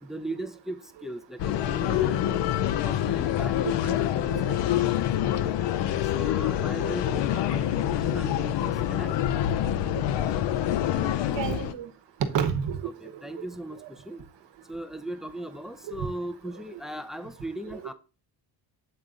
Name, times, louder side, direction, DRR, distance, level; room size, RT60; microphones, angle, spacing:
voice 1, 0.0-2.4 2.8-4.9 5.4-5.5 6.1-9.2 11.2-11.4 13.0-14.2 14.7-17.9, right 1 dB, ahead, 0.5 m, -38 dB
sound 1, 1.4-11.7, left 11 dB, 65° left, 0.6 m, -26 dB
voice 2, 11.3-11.9 12.2-12.9 13.8-13.9 16.0-16.1 17.7-17.8, right 7 dB, 65° right, 1.1 m, -30 dB
8.0 x 3.9 x 3.7 m
cardioid pair, 85°, 46 cm